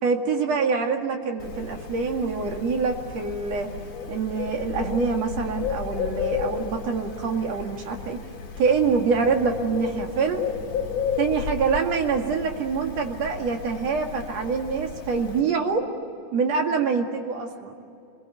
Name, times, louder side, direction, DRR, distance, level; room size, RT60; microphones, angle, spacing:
voice 1, 0.0-3.7 4.1-8.2 8.6-10.5 11.2-15.9 16.3-17.8, right 5 dB, 60° right, 3 dB, 3.2 m, -25 dB
Bird, 1.4-15.4, left 6 dB, 60° left, 3.8 m, -33 dB
26.5 x 22.0 x 9.0 m, 2.6 s
omnidirectional pair, 3.5 m